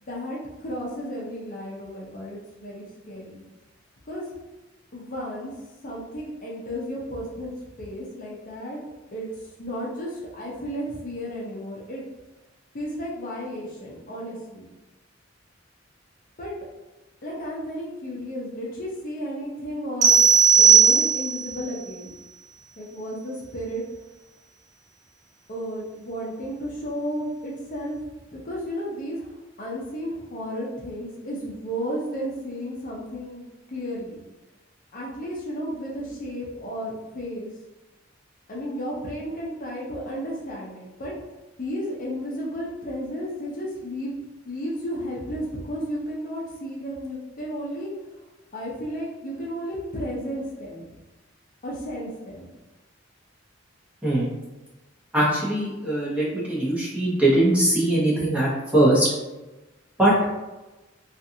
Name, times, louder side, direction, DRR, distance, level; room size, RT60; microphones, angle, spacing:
voice 1, 0.1-3.4 4.1-4.3 4.9-5.5 5.8-8.8 9.1-12.0 12.7-14.7 16.4-16.5 17.2-20.2 20.5-22.1 22.8-23.8 25.5-28.0 28.3-29.3 29.6-34.2 34.9-37.5 38.5-41.1 41.6-44.1 44.4-47.9 48.5-50.9 51.6-52.4, equal, 45° left, -4 dB, 0.6 m, -33 dB
sound 1, 20.0-21.5, right 6 dB, 40° right, 0.3 m, -16 dB
voice 2, 55.1-59.1 60.0-60.1, right 1 dB, 5° right, -7 dB, 0.8 m, -21 dB
2.4 x 2.4 x 2.7 m, 1.1 s
head